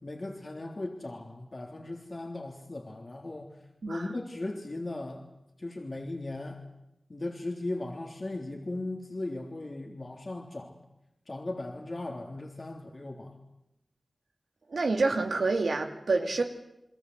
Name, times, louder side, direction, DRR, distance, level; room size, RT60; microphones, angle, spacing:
voice 1, 0.0-3.6 3.9-5.2 5.6-6.6 7.1-10.8 11.3-13.4, left 2 dB, 50° left, 1 dB, 3.4 m, -37 dB
voice 2, 14.7-16.4, right 3 dB, 85° right, 4 dB, 2.7 m, -27 dB
29.5 x 22.0 x 8.2 m, 0.89 s
cardioid pair, 40°, 0 cm